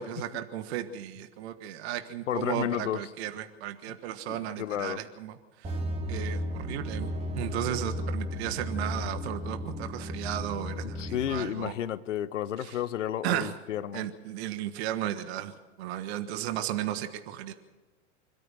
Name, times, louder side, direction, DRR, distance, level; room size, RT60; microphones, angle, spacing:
voice 1, 0.0-5.7 6.1-11.8 12.6-12.8 13.2-13.5 13.9-17.5, right 11 dB, 55° right, 9 dB, 1.5 m, -35 dB
voice 2, 2.3-3.0 4.3-5.0 11.0-14.1, left 10 dB, 80° left, 16 dB, 0.9 m, -32 dB
sound 1, 5.6-11.5, equal, 20° right, 2.6 m, -34 dB
25.5 x 13.5 x 7.6 m, 1.2 s
hypercardioid pair, 105°, 37 cm